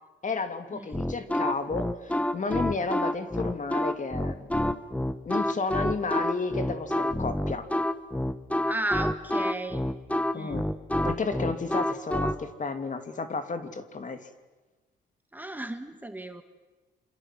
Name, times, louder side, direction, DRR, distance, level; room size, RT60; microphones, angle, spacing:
voice 1, 0.2-4.5 5.2-7.7 10.3-10.7 11.0-14.2, left 4 dB, 40° left, 8 dB, 2.8 m, -32 dB
sound 1, 0.9-12.4, left 1 dB, 5° left, 1.4 m, -28 dB
voice 2, 8.7-9.9 10.3-10.6 15.3-16.4, right 1 dB, 10° right, 7 dB, 1.9 m, -34 dB
27.5 x 26.5 x 7.7 m, 1.2 s
cardioid pair, 90°, 20 cm